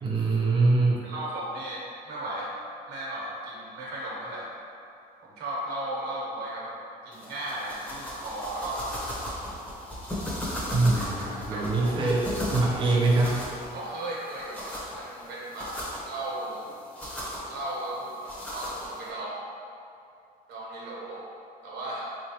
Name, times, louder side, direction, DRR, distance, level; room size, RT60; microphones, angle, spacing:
voice 1, 0.0-1.0 10.7-13.4, right 3 dB, 30° right, -5 dB, 0.6 m, -24 dB
voice 2, 1.0-2.5 2.9-4.5 5.2-9.1 10.9-12.1 13.7-15.7 16.1-16.7 17.5-19.4 20.5-21.2 21.6-22.1, right 1 dB, 80° right, -5 dB, 1.0 m, -36 dB
sound 1, 7.1-19.1, equal, 10° left, 0.8 m, -37 dB
3.8 x 3.1 x 2.8 m, 2.5 s
cardioid pair, 110°, 17 cm